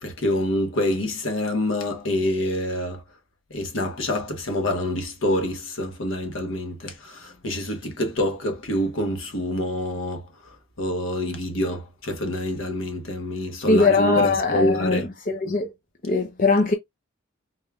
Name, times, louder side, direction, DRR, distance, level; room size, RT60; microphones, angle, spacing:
voice 1, 0.0-3.0 3.5-10.2 10.8-15.1, left 1 dB, 70° left, 1.2 m, -26 dB
voice 2, 13.7-15.7 16.0-16.7, left 3 dB, 40° left, 0.6 m, -21 dB
4.1 x 3.5 x 2.4 m
head